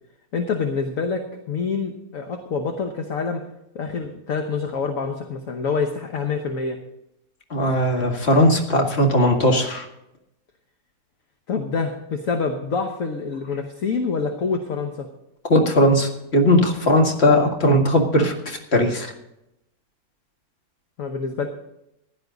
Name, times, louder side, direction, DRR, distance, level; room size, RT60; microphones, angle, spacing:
voice 1, 0.3-3.4 3.7-6.8 11.5-15.1 21.0-21.5, left 5 dB, 65° left, 5 dB, 1.4 m, -26 dB
voice 2, 7.5-9.9 15.5-19.1, left 1 dB, 45° left, 1 dB, 2.1 m, -18 dB
15.5 x 11.0 x 4.0 m, 0.85 s
omnidirectional pair, 1.6 m